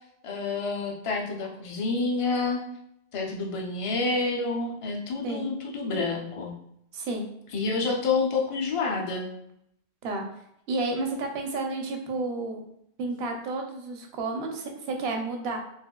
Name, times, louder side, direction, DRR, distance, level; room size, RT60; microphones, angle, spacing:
voice 1, 0.2-2.6 3.1-6.5 7.5-9.3, left 3 dB, 45° left, 0 dB, 0.5 m, -28 dB
voice 2, 6.9-7.3 10.0-10.2 10.7-12.6 13.0-15.6, right 3 dB, 85° right, 3 dB, 0.8 m, -31 dB
3.4 x 2.4 x 2.2 m, 0.75 s
omnidirectional pair, 1.0 m